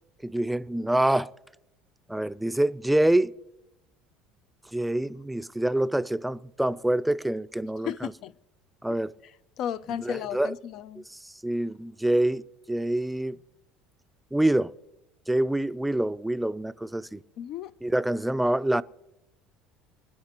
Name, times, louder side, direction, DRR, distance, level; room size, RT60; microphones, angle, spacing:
voice 1, 0.2-1.3 2.1-3.3 4.7-8.1 8.8-9.1 10.0-10.5 11.1-13.4 14.3-14.7 15.3-17.2 17.8-18.8, right 1 dB, 5° right, 0.4 m, -26 dB
voice 2, 7.8-8.3 9.6-11.1 17.4-17.7, left 9 dB, 60° left, 0.4 m, -34 dB
25.5 x 9.9 x 2.9 m
supercardioid pair, 95°, 0 cm